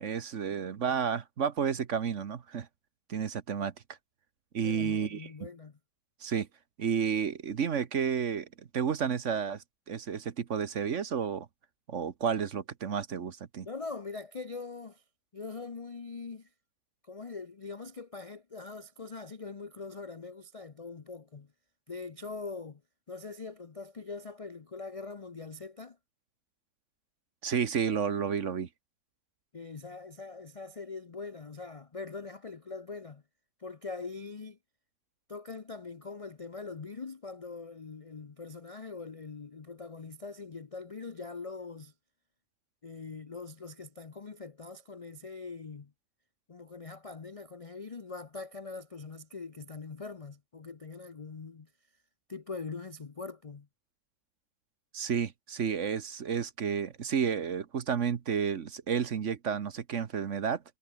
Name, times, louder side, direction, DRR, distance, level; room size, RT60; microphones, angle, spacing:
voice 1, 0.0-2.7 3.1-3.7 4.5-5.3 6.2-6.5 6.8-11.5 11.9-13.7 27.4-28.7 54.9-60.6, right 7 dB, 50° right, 1.3 m, -31 dB
voice 2, 4.6-5.8 13.6-15.0 15.3-16.5 17.0-21.5 21.9-22.8 23.1-26.0 29.5-33.2 33.6-34.6 35.3-41.9 42.8-45.9 46.5-51.7 52.3-53.7, left 4 dB, 55° left, 0.4 m, -42 dB
omnidirectional pair, 1.8 m